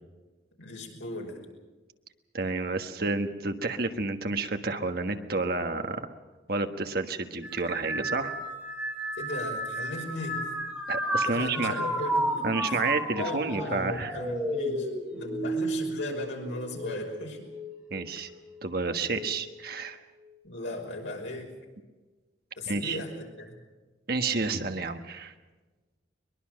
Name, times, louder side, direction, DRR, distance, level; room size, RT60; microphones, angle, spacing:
voice 1, 0.6-1.4 9.2-10.5 11.2-12.8 13.1-17.5 20.4-21.5 22.6-23.6, left 1 dB, 85° left, 1 dB, 5.8 m, -37 dB
voice 2, 2.3-6.1 6.5-8.4 10.9-11.8 12.4-14.2 17.9-18.3 18.6-20.0 22.7-23.0 24.1-25.3, right 3 dB, 55° right, 6 dB, 1.5 m, -30 dB
sound 1, 7.4-17.0 17.5-18.1 19.0-19.4, right 1 dB, 5° right, 3.9 m, -32 dB
22.5 x 22.0 x 6.5 m, 1.2 s
head